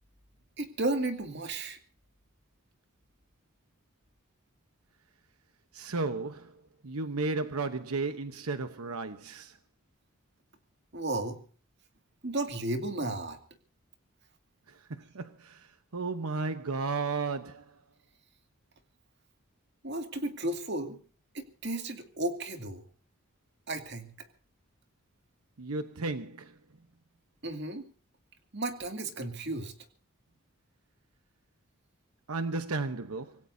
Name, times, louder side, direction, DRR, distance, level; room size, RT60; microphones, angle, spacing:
voice 1, 0.6-1.8 10.9-11.4 12.2-13.4 19.8-21.0 21.3-22.8 23.7-24.1 27.4-27.8 28.5-29.7, right 2 dB, 50° right, 2.3 m, -33 dB
voice 2, 5.7-6.6 6.8-9.6 14.7-17.8 25.6-26.5 32.3-33.4, right 3 dB, 85° right, 1.0 m, -34 dB
25.5 x 18.5 x 2.7 m
head